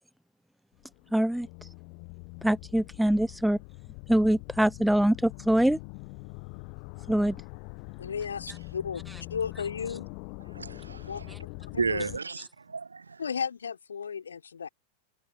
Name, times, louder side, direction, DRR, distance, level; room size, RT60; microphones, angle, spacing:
sound 1, 0.8-12.2, left 40 dB or more, 45° left, 1.1 m, -43 dB
voice 1, 1.1-1.5 2.4-3.6 4.1-5.8 7.1-7.4, right 1 dB, ahead, 0.7 m, -24 dB
voice 2, 8.0-9.0 9.3-10.1 11.0-11.2 11.7-12.0 13.2-14.7, left 6 dB, 70° left, 4.0 m, -34 dB
voice 3, 10.5-11.2 11.8-13.2, right 4 dB, 75° right, 0.4 m, -33 dB
figure-of-eight pair, 90°, 0 cm